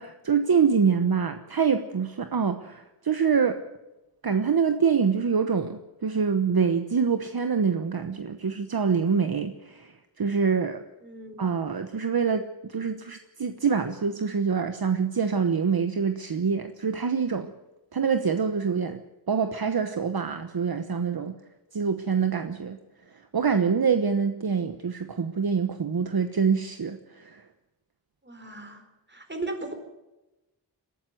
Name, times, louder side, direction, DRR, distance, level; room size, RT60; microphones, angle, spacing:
voice 1, 0.0-3.6 4.2-10.9 11.4-17.5 17.9-19.0 19.3-21.4 21.7-22.8 23.1-27.4, right 6 dB, 55° right, 8 dB, 1.2 m, -25 dB
voice 2, 11.0-11.4 28.2-28.8 29.1-29.7, right 2 dB, 25° right, 6 dB, 4.2 m, -37 dB
22.0 x 13.0 x 9.3 m, 1.0 s
wide cardioid pair, 85°, 44 cm